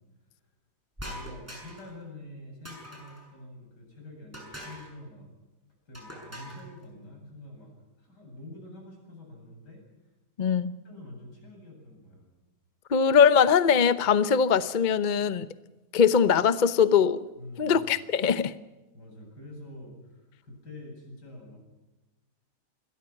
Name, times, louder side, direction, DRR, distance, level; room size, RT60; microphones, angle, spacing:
voice 1, 1.0-5.3 5.9-7.7 8.0-9.8 10.8-12.3 17.4-17.8 18.9-21.6, left 1 dB, 90° left, 1 dB, 8.9 m, -46 dB
sound 1, 1.0-1.9 2.7-3.3 4.3-4.9 5.9-6.7, equal, 10° right, 7.0 m, -43 dB
voice 2, 10.4-10.8 12.9-15.5 15.9-17.3 17.6-18.5, left 7 dB, 40° left, 13 dB, 0.8 m, -21 dB
28.0 x 21.5 x 6.0 m, 1.1 s
omnidirectional pair, 1.7 m